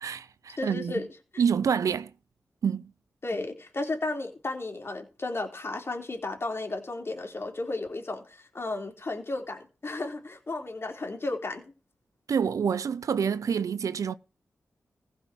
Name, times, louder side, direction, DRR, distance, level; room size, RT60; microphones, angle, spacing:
voice 1, 0.0-0.9 1.4-2.1 2.6-2.9 12.3-14.1, right 7 dB, 75° right, 0.6 m, -27 dB
voice 2, 0.6-1.0 3.2-11.6, left 2 dB, 45° left, 3.4 m, -33 dB
15.5 x 5.7 x 6.2 m
cardioid pair, 45°, 6 cm